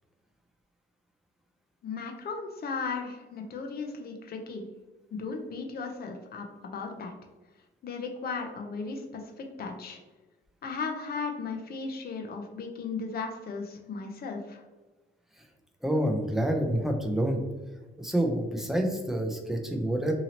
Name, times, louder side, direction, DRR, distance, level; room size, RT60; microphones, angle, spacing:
voice 1, 1.8-4.6 5.1-7.1 7.8-10.0 10.6-14.6, left 4 dB, 50° left, 3 dB, 0.6 m, -36 dB
voice 2, 15.8-17.4 18.0-20.1, right 1 dB, ahead, 2 dB, 0.5 m, -27 dB
2.8 x 2.7 x 2.8 m, 1.2 s
cardioid pair, 90°, 20 cm